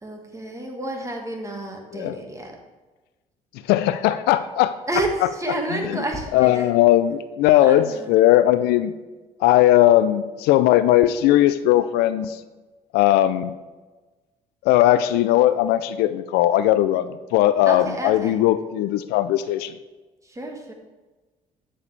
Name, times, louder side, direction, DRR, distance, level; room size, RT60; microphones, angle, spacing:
voice 1, 0.0-2.6 4.9-6.7 7.6-8.2 17.7-18.4 20.2-20.7, right 2 dB, 20° right, 2 dB, 1.7 m, -30 dB
voice 2, 3.7-4.8 5.8-6.0 6.3-8.9 9.4-12.4 12.9-13.5 14.6-19.7, left 13 dB, 75° left, 13 dB, 0.4 m, -18 dB
8.6 x 7.1 x 3.3 m, 1.2 s
supercardioid pair, 65°, 17 cm